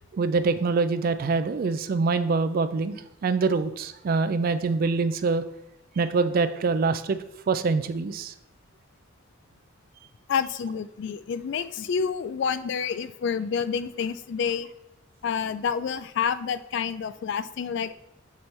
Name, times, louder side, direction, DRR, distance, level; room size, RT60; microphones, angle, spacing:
voice 1, 0.1-5.4 6.0-7.2 7.5-8.3, right 4 dB, 45° right, 12 dB, 0.3 m, -25 dB
voice 2, 10.3-14.7 15.2-17.9, left 6 dB, 60° left, 13 dB, 0.3 m, -28 dB
6.9 x 3.2 x 4.3 m, 0.80 s
head